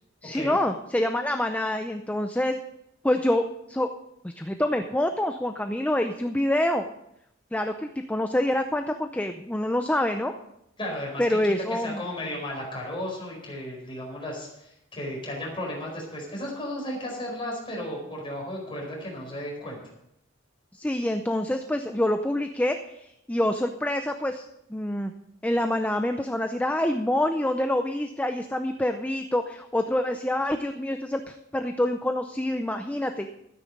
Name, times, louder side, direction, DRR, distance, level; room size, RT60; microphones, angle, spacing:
voice 1, 0.2-2.5 3.0-3.9 4.2-6.9 7.5-10.3 11.2-12.0 20.7-25.1 25.4-33.3, left 1 dB, 5° left, 6 dB, 0.5 m, -26 dB
voice 2, 10.8-11.5 11.8-19.8, left 1 dB, 25° left, -1 dB, 4.7 m, -34 dB
12.5 x 9.8 x 5.3 m, 0.81 s
head